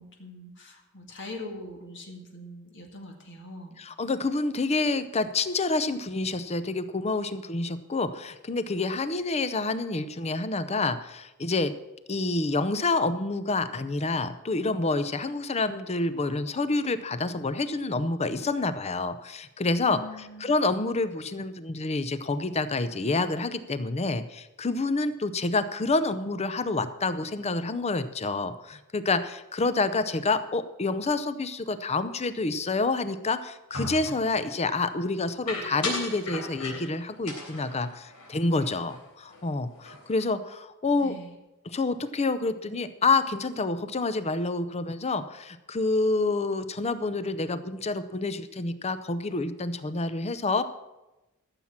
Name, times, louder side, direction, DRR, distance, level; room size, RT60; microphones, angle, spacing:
voice 1, 0.0-3.8 19.9-20.5 41.0-41.3, left 2 dB, 55° left, 2 dB, 2.0 m, -42 dB
voice 2, 3.8-11.7 12.1-41.1 41.6-50.6, left 3 dB, 30° left, 12 dB, 0.6 m, -28 dB
sound 1, 33.7-34.3 35.5-37.0 37.3-39.0 39.3-39.5 39.8-40.2, left 2 dB, 85° left, 3.7 m, -36 dB
14.0 x 7.4 x 7.3 m, 1.0 s
head